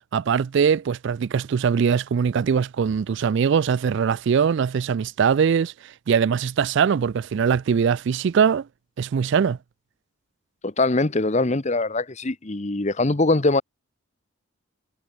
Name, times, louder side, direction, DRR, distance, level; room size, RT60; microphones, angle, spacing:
voice 1, 0.1-8.7 9.0-9.6, right 6 dB, 55° right, 0.3 m, -21 dB
voice 2, 10.6-13.6, left 2 dB, 35° left, 0.9 m, -22 dB
head